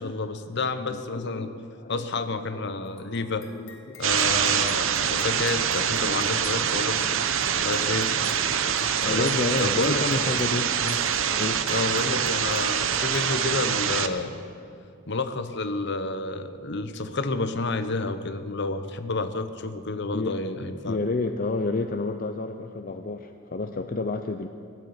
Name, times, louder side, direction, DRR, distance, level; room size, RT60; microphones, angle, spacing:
voice 1, 0.0-1.5 1.9-3.5 4.0-7.0 7.6-8.1 9.0-10.0 11.7-14.4 15.1-21.0, left 3 dB, 60° left, 10 dB, 0.9 m, -30 dB
voice 2, 0.9-2.1 2.5-2.6 3.1-3.2 3.5-4.6 5.1-5.7 6.0-11.0 11.4-11.6 20.1-20.4 20.9-24.5, left 3 dB, 45° left, 6 dB, 0.6 m, -32 dB
sound 1, 2.8-13.4, left 3 dB, 90° left, 2.0 m, -48 dB
sound 2, 4.0-14.1, right 8 dB, 75° right, 0.8 m, -25 dB
18.0 x 8.3 x 9.4 m, 2.5 s
head